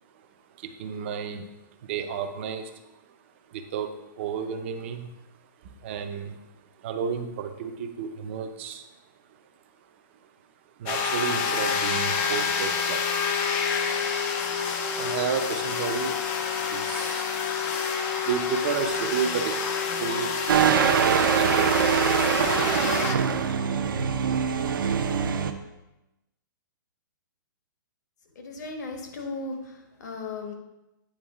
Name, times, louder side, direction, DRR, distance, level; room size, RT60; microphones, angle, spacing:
voice 1, 0.6-1.5 1.8-2.8 3.5-5.1 5.6-6.4 6.8-8.9 10.8-13.3 13.8-16.3 16.6-17.6 18.2-19.6 20.0-22.1, right 7 dB, 35° right, 7 dB, 0.6 m, -32 dB
sound 1, 10.9-23.2, left 6 dB, 20° left, 0.4 m, -28 dB
sound 2, 20.5-25.5, right 7 dB, 75° right, 0.6 m, -23 dB
voice 2, 28.4-30.5, left 3 dB, 55° left, 3 dB, 1.3 m, -36 dB
8.7 x 3.5 x 4.8 m, 0.96 s
hypercardioid pair, 170°, 11 cm